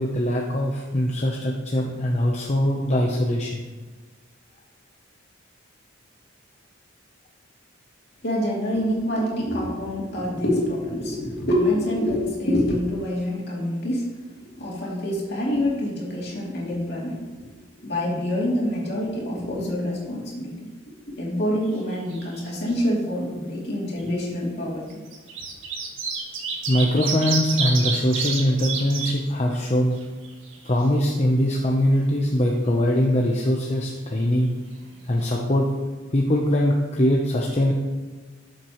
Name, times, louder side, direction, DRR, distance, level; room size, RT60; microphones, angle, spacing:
voice 1, 0.0-3.7 26.7-29.9 30.6-34.5 35.1-35.7 36.1-37.7, left 1 dB, 35° left, -1 dB, 0.8 m, -22 dB
voice 2, 8.2-14.0 14.6-17.2 17.8-20.7 21.2-25.0, left 1 dB, 55° left, -4 dB, 2.8 m, -26 dB
sound 1, 21.7-22.4 22.7-22.8 23.9-24.0 24.9-29.1 29.6-29.7 30.0-31.0 34.9-35.0 35.2-35.3, right 5 dB, 75° right, 1.6 m, -29 dB
13.0 x 7.4 x 3.1 m, 1.3 s
head